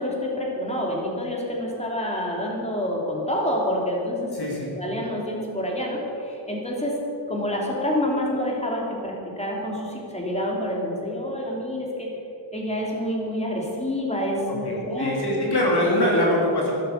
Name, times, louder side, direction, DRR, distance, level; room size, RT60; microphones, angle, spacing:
voice 1, 0.0-4.3 4.8-7.0 7.3-12.1 12.5-15.5, left 1 dB, 15° left, -2 dB, 3.2 m, -27 dB
voice 2, 4.3-4.7 14.5-16.7, left 1 dB, 55° left, -3 dB, 3.4 m, -23 dB
13.0 x 12.5 x 6.7 m, 2.7 s
wide cardioid pair, 135°, 46 cm